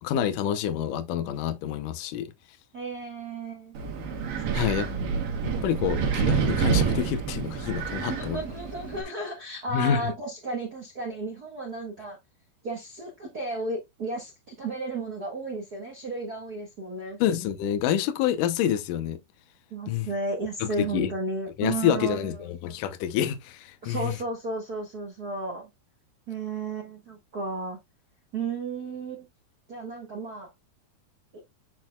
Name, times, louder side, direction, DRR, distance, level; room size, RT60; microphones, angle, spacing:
voice 1, 0.0-2.3 4.5-4.9 5.4-8.4 9.7-10.1 17.2-19.2 19.9-20.1 20.6-21.1 21.6-24.2, left 10 dB, 85° left, 1.9 m, -27 dB
voice 2, 2.7-3.8 4.4-5.0 8.0-12.2 12.6-17.2 19.7-22.5 23.8-25.7 26.3-27.8 28.3-29.3 29.7-30.5 31.3-31.4, right 3 dB, 80° right, 0.8 m, -34 dB
Wind, 3.7-9.0, right 6 dB, 65° right, 2.9 m, -28 dB
10.5 x 4.3 x 2.3 m
omnidirectional pair, 4.8 m